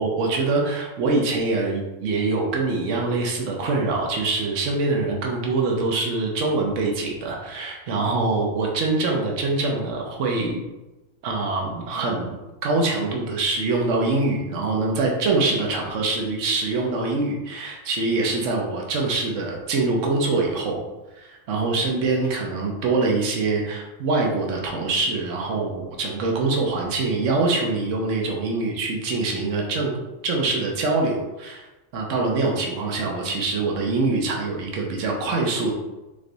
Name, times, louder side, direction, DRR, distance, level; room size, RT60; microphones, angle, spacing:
voice 1, 0.0-10.6 11.2-12.3 12.6-20.8 21.2-31.6 31.9-35.7, right 3 dB, 70° right, 0 dB, 1.2 m, -24 dB
3.8 x 3.4 x 3.9 m, 1.1 s
omnidirectional pair, 1.4 m